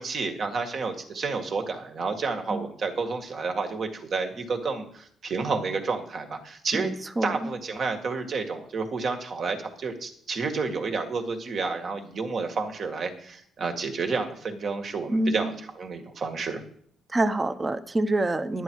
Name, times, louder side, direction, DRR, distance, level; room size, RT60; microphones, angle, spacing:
voice 1, 0.0-6.9 7.2-16.6, right 4 dB, 55° right, 5 dB, 1.8 m, -30 dB
voice 2, 6.7-7.4 15.1-15.6 17.1-18.6, right 2 dB, 25° right, 11 dB, 0.9 m, -26 dB
11.5 x 9.8 x 4.7 m, 0.62 s
cardioid pair, 90°, 0 cm